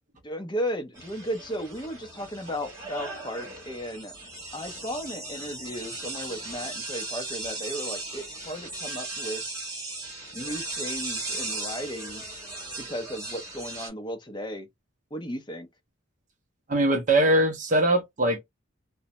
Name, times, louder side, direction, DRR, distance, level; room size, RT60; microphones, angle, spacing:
voice 1, 0.2-4.2 4.5-9.4 10.3-12.3 12.8-14.7 15.1-15.7, equal, 20° left, 0.5 m, -35 dB
sound 1, 0.9-13.9, right 2 dB, 15° right, 1.1 m, -37 dB
voice 2, 16.7-18.4, right 1 dB, 35° right, 0.5 m, -22 dB
2.6 x 2.1 x 2.8 m
head